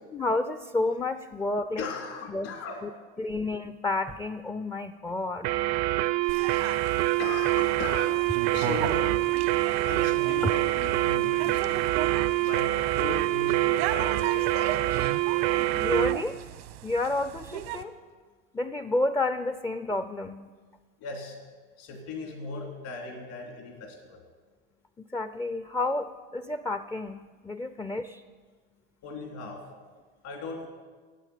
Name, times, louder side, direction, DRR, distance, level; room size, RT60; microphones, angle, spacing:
voice 1, 0.1-1.8 2.3-2.5 2.8-2.9 3.2-5.5 10.4-10.5 15.8-16.4 16.8-17.9 18.5-20.5 25.1-28.2, left 2 dB, 10° left, 11 dB, 0.5 m, -30 dB
voice 2, 1.8-2.8 6.2-6.8 7.2-8.2 8.5-9.1 9.8-11.8 12.4-15.1 21.0-21.4 21.8-24.2 29.0-29.6 30.2-30.7, left 4 dB, 65° left, 2 dB, 3.1 m, -38 dB
sound 1, 5.4-16.2, right 17 dB, 55° right, 0.6 m, -25 dB
sound 2, 6.3-17.8, right 10 dB, 85° right, 1.2 m, -37 dB
13.0 x 8.9 x 8.4 m, 1.5 s
supercardioid pair, 100°, 32 cm